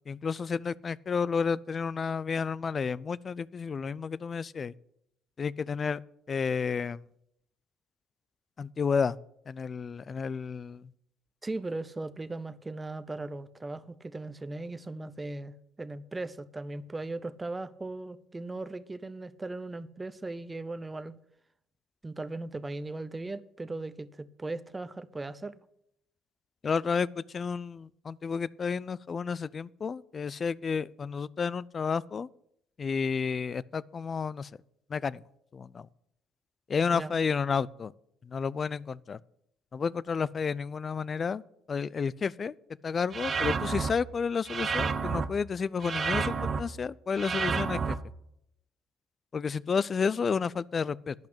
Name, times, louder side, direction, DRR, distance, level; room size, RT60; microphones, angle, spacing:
voice 1, 0.1-4.7 5.4-6.0 6.3-7.0 8.6-9.2 9.5-10.9 26.6-32.3 32.8-34.5 34.9-35.2 35.5-35.9 36.7-37.9 38.2-39.2 39.7-41.4 41.7-42.5 42.8-46.3 46.6-48.0 49.3-51.1, left 5 dB, 40° left, 0.4 m, -31 dB
voice 2, 11.4-21.2 22.0-25.6 36.9-37.1, right 2 dB, 20° right, 0.7 m, -38 dB
sound 1, 43.1-43.9 44.5-45.3 45.8-46.6 47.2-47.9, right 5 dB, 40° right, 0.9 m, -30 dB
10.5 x 5.8 x 8.5 m
supercardioid pair, 75°, 0 cm